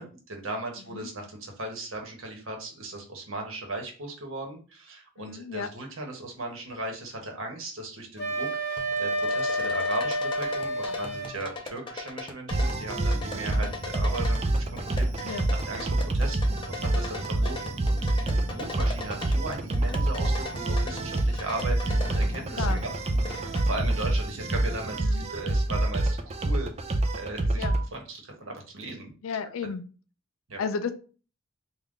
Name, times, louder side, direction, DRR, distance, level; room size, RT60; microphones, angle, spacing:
voice 1, 0.0-14.4 14.7-22.9 23.3-26.7 27.1-27.6 27.9-29.1 30.5-30.6, right 2 dB, 75° right, 2 dB, 1.1 m, -37 dB
voice 2, 5.2-5.7 10.8-11.0 13.5-13.7 15.2-15.5 19.9-20.0 22.2-22.8 25.0-25.3 27.5-27.8 29.2-29.8 30.6-30.9, left 5 dB, 85° left, 10 dB, 0.4 m, -34 dB
Wind instrument woodwind instrument, 8.2-11.4, equal, 55° left, 1.0 m, -29 dB
sound 1, 8.8-23.7, left 3 dB, 25° left, 0.5 m, -40 dB
sound 2, 12.5-27.8, right 1 dB, 30° right, 0.4 m, -27 dB
3.7 x 2.3 x 3.6 m, 0.37 s
head